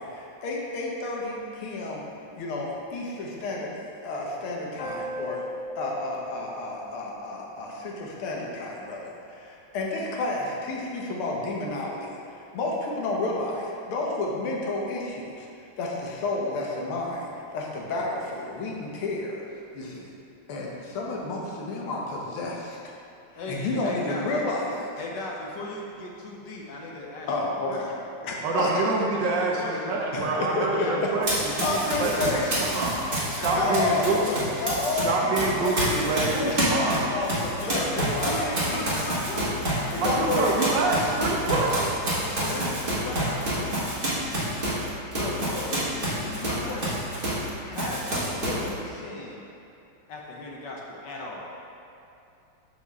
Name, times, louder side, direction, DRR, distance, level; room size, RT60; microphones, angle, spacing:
voice 1, 0.0-2.0 2.3-5.4 5.8-15.5 15.8-19.4 19.7-20.1 20.5-22.8 23.5-24.9 27.3-27.9 28.2-28.7 30.1-30.9 31.6-32.5 33.5-34.2 34.6-35.7 36.3-36.8 37.1-37.9 38.1-38.9 39.9-40.8, left 2 dB, 85° left, -2 dB, 1.8 m, -31 dB
sound 1, 4.8-7.9, equal, 50° left, 1.0 m, -38 dB
voice 2, 23.4-24.3 25.0-27.8 28.6-28.7 29.1-29.9 30.7-31.3 31.8-32.3 33.4-34.4 37.5-40.6 42.1-44.3 45.1-45.8 46.2-47.1 47.6-49.5 50.1-51.5, left 2 dB, 70° left, -2 dB, 1.2 m, -36 dB
voice 3, 28.4-34.2 35.0-37.1 40.0-42.2, right 3 dB, 70° right, -2 dB, 1.2 m, -27 dB
Run, 31.2-35.0 35.3-47.5 47.7-48.7, right 1 dB, 30° right, 1.4 m, -28 dB
5.8 x 4.8 x 4.1 m, 2.7 s
omnidirectional pair, 2.3 m